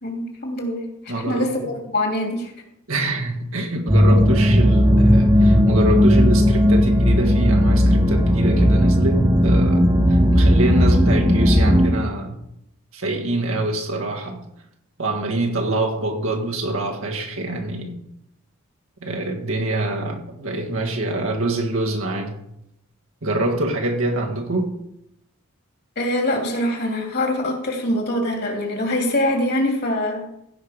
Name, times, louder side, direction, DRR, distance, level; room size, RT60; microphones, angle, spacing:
voice 1, 0.0-2.5 26.0-30.3, left 1 dB, 45° left, 2.6 m, -24 dB
voice 2, 1.1-1.7 2.9-9.8 10.1-12.4 12.9-14.4 15.0-18.0 19.0-22.3 23.2-24.8, right 2 dB, 70° right, 1.7 m, -25 dB
sound 1, 3.9-11.9, equal, 15° right, 1.1 m, -15 dB
15.5 x 5.7 x 5.0 m
head